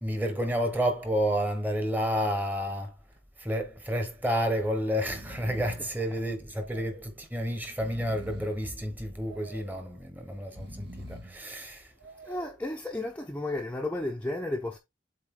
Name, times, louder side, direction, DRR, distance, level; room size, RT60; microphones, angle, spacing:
voice 1, 0.0-2.9 3.4-11.9, equal, 10° right, 1.2 m, -30 dB
Breathing, 2.8-3.2 3.5-3.6 4.5-4.7 4.9-6.0 6.5-7.2 7.6-8.7 9.2-9.9 10.4-11.4 12.0-12.6, equal, 65° right, 1.6 m, -45 dB
voice 2, 5.8-6.2 12.2-14.8, left 2 dB, 10° left, 0.8 m, -33 dB
7.8 x 3.8 x 3.8 m
head